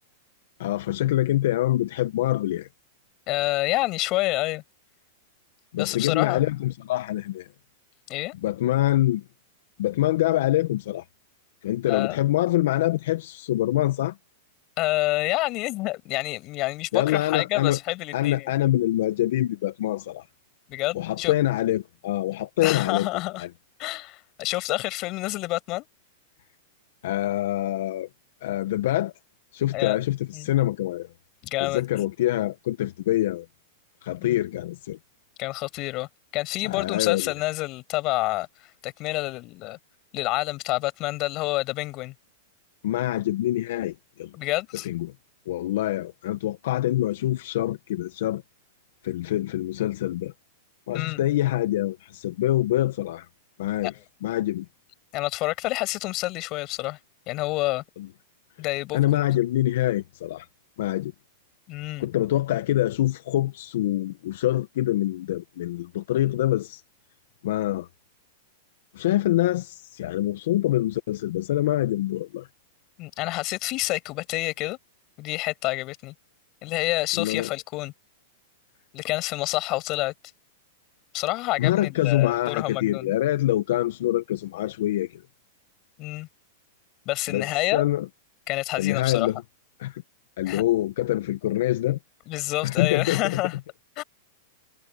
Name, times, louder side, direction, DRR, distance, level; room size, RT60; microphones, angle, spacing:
voice 1, 0.6-2.7 5.7-7.5 8.4-9.2 9.8-11.1 11.6-14.2 16.9-17.8 18.1-20.3 20.9-23.1 23.4-23.5 27.0-28.1 28.4-29.1 29.5-31.1 31.6-33.5 34.0-35.0 36.6-37.3 42.8-44.3 44.8-45.1 45.5-48.4 49.0-50.3 50.9-53.3 53.6-54.7 58.0-58.1 58.9-60.5 60.8-61.1 62.0-66.8 67.4-67.9 68.9-72.5 77.2-77.5 81.6-85.2 87.3-88.1 88.8-89.4 89.8-90.0 90.4-92.0 92.6-93.4, left 14 dB, 70° left, 1.3 m, -25 dB
voice 2, 3.3-4.6 5.8-6.4 8.1-8.3 11.9-12.2 14.8-18.5 20.7-21.3 22.6-23.4 23.8-25.9 29.7-30.0 30.3-30.5 31.4-31.8 34.2-34.4 35.4-39.8 40.1-42.1 44.3-44.9 50.9-51.2 53.8-53.9 55.1-57.0 57.3-57.8 58.6-59.3 61.7-62.1 73.0-74.8 75.2-76.1 76.6-77.9 78.9-80.1 81.1-83.1 86.0-86.3 87.1-87.9 88.5-89.3 90.5-90.6 92.3-93.6 94.0-94.1, left 20 dB, 40° left, 6.9 m, -28 dB
hypercardioid pair, 130°, 0 cm